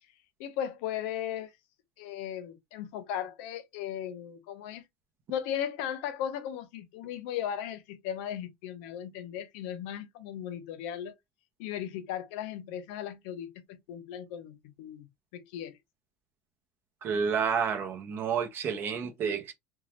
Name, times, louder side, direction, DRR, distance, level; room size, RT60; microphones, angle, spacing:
voice 1, 0.4-1.5 2.0-4.8 5.3-11.1 11.6-15.1 15.3-15.7, left 10 dB, 65° left, 0.6 m, -37 dB
voice 2, 17.0-19.5, right 6 dB, 35° right, 0.7 m, -30 dB
3.0 x 2.3 x 2.8 m
supercardioid pair, 145°, 7 cm